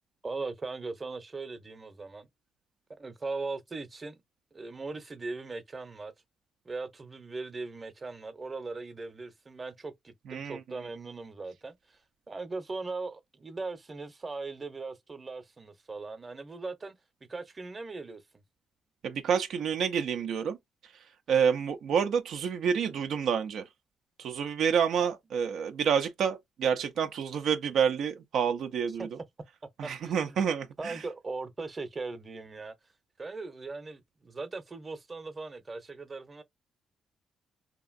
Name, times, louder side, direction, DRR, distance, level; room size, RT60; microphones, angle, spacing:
voice 1, 0.2-2.3 2.9-4.2 4.5-6.1 6.6-12.0 12.3-17.0 17.3-18.4 29.0-29.1 29.8-30.4 30.8-32.7 33.2-36.4, right 3 dB, 30° right, 0.8 m, -39 dB
voice 2, 10.3-10.9 19.0-20.6 20.8-20.9 21.3-23.7 24.2-29.1 29.8-31.0, right 7 dB, 75° right, 0.4 m, -28 dB
2.9 x 2.5 x 2.5 m
cardioid pair, 75°, 0 cm